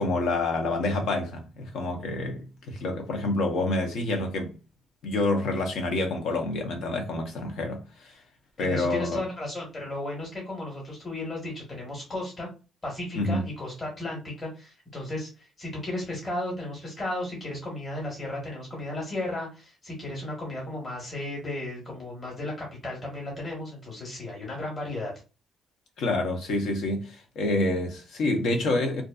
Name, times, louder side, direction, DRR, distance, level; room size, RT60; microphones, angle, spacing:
voice 1, 0.0-4.5 5.0-8.2 8.6-9.2 13.1-13.4 26.0-29.0, left 2 dB, 80° left, 0.8 m, -28 dB
voice 2, 8.6-12.5 12.8-25.1, left 1 dB, 30° left, 1.3 m, -34 dB
2.5 x 2.4 x 2.3 m
cardioid pair, 90°, 0 cm